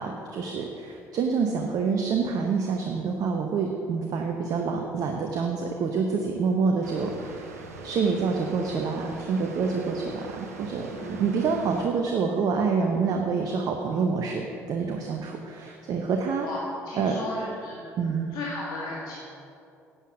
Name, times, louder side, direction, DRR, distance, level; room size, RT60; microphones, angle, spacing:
voice 1, 0.0-16.5 17.0-17.1 18.0-18.3, right 5 dB, 50° right, 3 dB, 1.0 m, -27 dB
Water, 6.8-11.9, right 4 dB, 80° right, 0.8 m, -43 dB
voice 2, 16.9-19.1, left 2 dB, 60° left, -6 dB, 2.1 m, -36 dB
11.5 x 8.1 x 6.0 m, 2.6 s
figure-of-eight pair, 50°, 8 cm